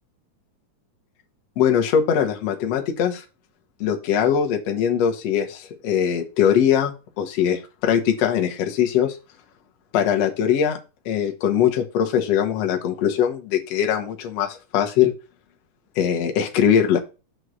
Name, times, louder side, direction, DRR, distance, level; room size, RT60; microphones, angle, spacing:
voice 1, 1.6-3.2 3.8-9.2 9.9-10.8 11.1-15.1 16.0-17.0, left 8 dB, 65° left, 4 dB, 1.9 m, -21 dB
7.9 x 3.1 x 6.1 m, 0.31 s
omnidirectional pair, 3.4 m